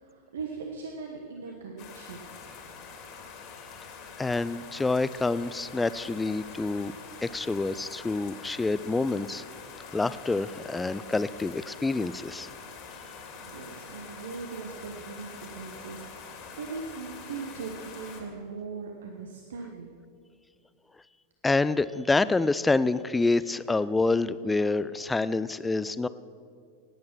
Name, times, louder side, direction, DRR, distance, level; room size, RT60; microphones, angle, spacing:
voice 1, 0.0-2.2 13.3-20.0, right 4 dB, 65° right, 2 dB, 1.1 m, -40 dB
sound 1, 1.8-18.2, left 5 dB, 40° left, 2.3 m, -45 dB
voice 2, 4.2-6.9 7.2-9.4 9.9-12.5 21.4-26.1, left 3 dB, 10° left, 16 dB, 0.4 m, -27 dB
18.5 x 8.7 x 6.0 m, 2.2 s
figure-of-eight pair, 90°, 0 cm